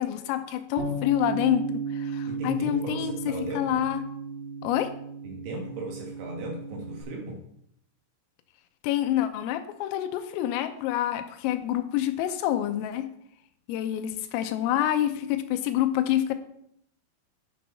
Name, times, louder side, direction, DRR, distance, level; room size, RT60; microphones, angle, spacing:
voice 1, 0.0-4.0 4.6-4.9 8.8-13.1 13.7-16.3, left 12 dB, 85° left, 9 dB, 3.4 m, -27 dB
Bass guitar, 0.8-7.0, right 4 dB, 85° right, 4.6 m, -34 dB
voice 2, 2.3-3.8 5.2-7.4, right 1 dB, 65° right, 1 dB, 3.0 m, -37 dB
10.0 x 6.3 x 5.7 m, 0.71 s
omnidirectional pair, 6.0 m